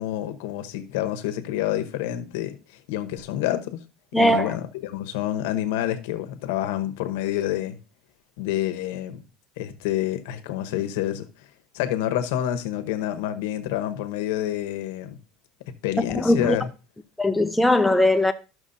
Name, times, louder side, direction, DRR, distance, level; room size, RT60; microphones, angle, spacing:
voice 1, 0.0-3.8 4.1-7.8 8.4-9.2 9.6-11.5 11.7-15.2 15.8-16.7, left 12 dB, 90° left, 0.9 m, -28 dB
voice 2, 4.1-4.5 16.2-16.6 17.2-18.3, left 1 dB, 5° left, 0.4 m, -19 dB
12.5 x 6.1 x 2.6 m
cardioid pair, 170°, 0 cm